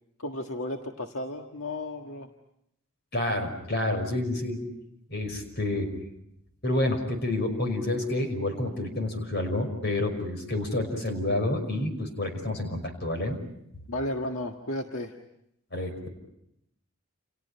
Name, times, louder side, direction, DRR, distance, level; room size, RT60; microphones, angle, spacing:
voice 1, 0.2-2.3 13.9-15.1, left 1 dB, 70° left, 3 dB, 1.7 m, -33 dB
voice 2, 3.1-4.6 5.1-5.9 6.6-13.4 15.7-16.1, left 1 dB, 50° left, 6 dB, 5.6 m, -29 dB
29.5 x 29.5 x 5.7 m, 0.78 s
head